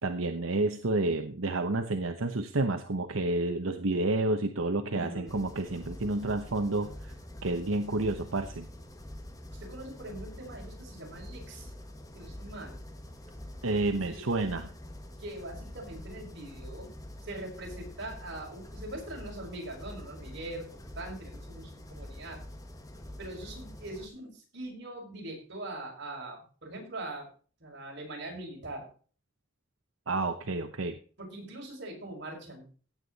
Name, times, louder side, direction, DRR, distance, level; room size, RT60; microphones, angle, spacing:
voice 1, 0.0-7.1 7.4-8.7 13.6-14.7 30.1-31.0, right 2 dB, 90° right, 6 dB, 1.0 m, -30 dB
voice 2, 4.9-5.4 9.5-11.7 12.1-12.8 14.1-14.3 15.2-16.9 17.2-20.7 21.0-22.4 23.2-27.3 27.6-28.9 31.2-32.6, right 1 dB, 60° right, 0 dB, 5.9 m, -42 dB
sound 1, 5.3-24.1, left 1 dB, 20° left, 1.7 m, -46 dB
16.5 x 8.3 x 4.1 m, 0.41 s
head